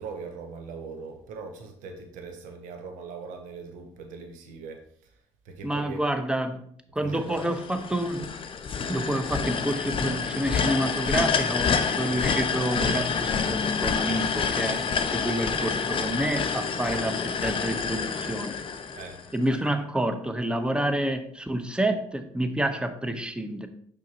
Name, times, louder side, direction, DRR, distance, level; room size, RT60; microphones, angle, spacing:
voice 1, 0.0-5.1 5.4-6.0 7.0-7.5 18.9-19.2, right 5 dB, 75° right, 5 dB, 0.9 m, -40 dB
voice 2, 5.6-6.6 6.9-8.3 8.9-18.6 19.3-23.7, right 1 dB, 5° right, 8 dB, 0.8 m, -28 dB
sound 1, 7.3-19.4, left 5 dB, 40° left, 0.6 m, -28 dB
6.3 x 5.2 x 2.9 m, 0.62 s
hypercardioid pair, 60°, 13 cm